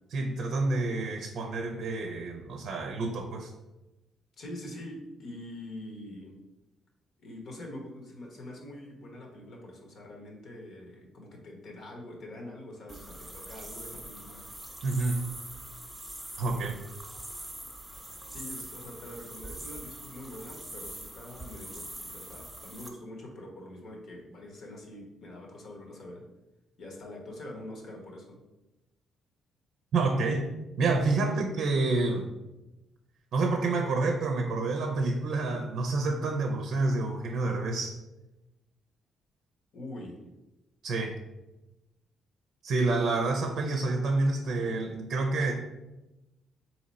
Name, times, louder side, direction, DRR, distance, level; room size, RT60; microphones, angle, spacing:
voice 1, 0.1-3.5 14.8-15.3 16.4-16.8 29.9-30.5 30.8-32.3 33.3-37.9 40.8-41.2 42.6-45.5, right 3 dB, 70° right, 4 dB, 0.5 m, -28 dB
voice 2, 4.4-6.3 7.2-14.4 18.3-26.3 26.8-28.4 31.2-31.4 39.7-40.2, left 1 dB, 65° left, 0 dB, 1.1 m, -44 dB
sound 1, 12.9-22.9, right 1 dB, 5° right, 0.7 m, -43 dB
4.0 x 2.9 x 4.1 m, 1.0 s
cardioid pair, 90°, 0 cm